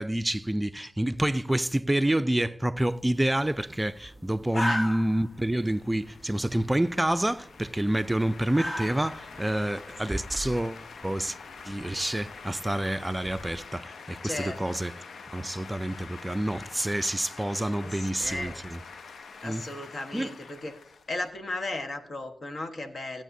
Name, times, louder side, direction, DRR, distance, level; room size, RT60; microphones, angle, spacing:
voice 1, 0.0-11.4 11.7-14.9 15.3-18.8 19.4-19.6 20.1-20.4, right 1 dB, 15° right, 0.4 m, -28 dB
sound 1, 2.8-13.7, left 1 dB, 30° left, 1.1 m, -40 dB
sound 2, 5.1-21.8, left 5 dB, 75° left, 0.6 m, -46 dB
voice 2, 14.2-14.6 17.8-18.6 19.4-20.7 21.1-23.2, left 2 dB, 55° left, 1.3 m, -35 dB
16.0 x 8.9 x 2.7 m
cardioid pair, 55°, 0 cm